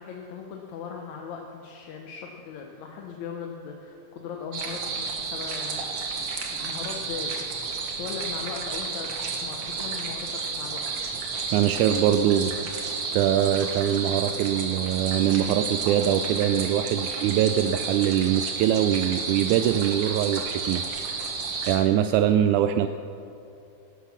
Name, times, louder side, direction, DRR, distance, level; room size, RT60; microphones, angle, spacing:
voice 1, 0.0-5.9 6.1-6.2 6.5-7.5 8.0-9.1 9.4-10.8, left 6 dB, 70° left, 1 dB, 2.2 m, -38 dB
sound 1, 4.5-21.8, right 4 dB, 55° right, 2.2 m, -31 dB
voice 2, 11.5-12.9 13.1-20.8 21.7-22.9, right 10 dB, 80° right, 9 dB, 2.0 m, -23 dB
17.5 x 12.5 x 5.9 m, 2.6 s
omnidirectional pair, 3.6 m